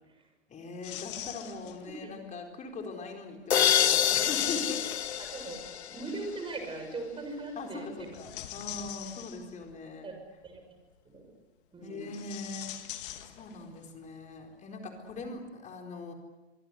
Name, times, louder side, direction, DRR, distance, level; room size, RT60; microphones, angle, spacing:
voice 1, 0.5-4.8 7.6-10.1 11.8-12.7 13.2-16.1, left 3 dB, 20° left, 3 dB, 4.3 m, -41 dB
sound 1, 0.8-2.0 3.9-5.8 8.0-9.7 12.0-13.8 14.0-14.1 15.1-15.3, left 13 dB, 50° left, 2.3 m, -42 dB
sound 2, 3.5-6.3, left 9 dB, 70° left, 0.9 m, -27 dB
voice 2, 5.2-5.6 5.9-8.1 10.0-10.1 10.4-10.6 11.0-11.2 11.7-12.1, right 3 dB, 15° right, 5 dB, 6.7 m, -39 dB
25.0 x 24.5 x 8.0 m, 1.1 s
figure-of-eight pair, 105°, 34 cm